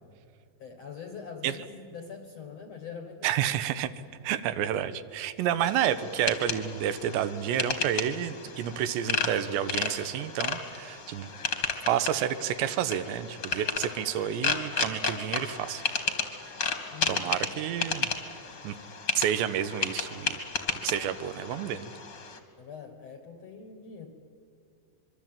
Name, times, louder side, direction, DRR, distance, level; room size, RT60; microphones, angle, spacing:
voice 1, 0.6-3.6 16.9-17.4 22.6-24.1, left 6 dB, 55° left, 6 dB, 1.9 m, -43 dB
voice 2, 3.2-3.9 4.2-11.3 11.8-15.8 17.1-18.1 18.6-18.8 19.2-20.4 20.8-21.9, right 10 dB, 85° right, 12 dB, 3.2 m, -30 dB
sound 1, 5.6-22.4, left 5 dB, 40° left, 1.6 m, -33 dB
25.5 x 23.5 x 8.9 m, 2.3 s
omnidirectional pair, 5.0 m